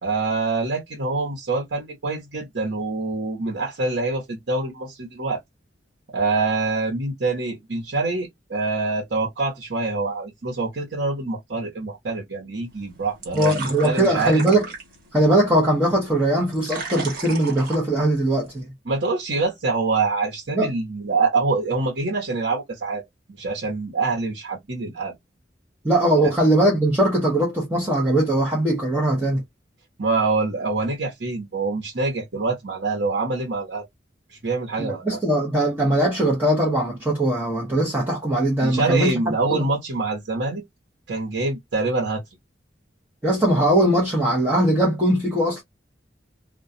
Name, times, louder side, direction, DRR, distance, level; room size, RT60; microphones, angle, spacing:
voice 1, 0.0-5.4 6.1-14.4 18.8-23.0 23.4-25.1 26.2-26.3 30.0-33.8 34.4-35.2 38.6-40.6 41.1-42.2, right 3 dB, 80° right, 1.0 m, -25 dB
sound 1, 12.7-18.6, right 4 dB, 55° right, 1.0 m, -37 dB
voice 2, 13.3-14.6 15.1-18.7 20.5-20.7 25.8-29.4 34.8-39.2 39.5-39.6 43.2-45.6, right 1 dB, 10° right, 0.8 m, -20 dB
2.3 x 2.2 x 2.6 m
head